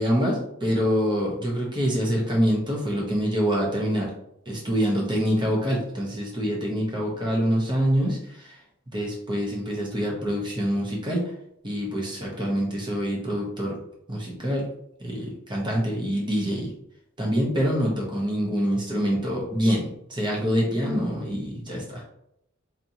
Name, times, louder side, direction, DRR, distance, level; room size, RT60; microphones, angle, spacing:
voice 1, 0.0-4.1 4.5-8.2 8.9-11.3 11.6-13.7 14.1-14.7 15.0-16.7 17.2-19.9 20.2-22.0, equal, 20° right, -2 dB, 1.0 m, -25 dB
4.2 x 3.2 x 2.8 m, 0.75 s
head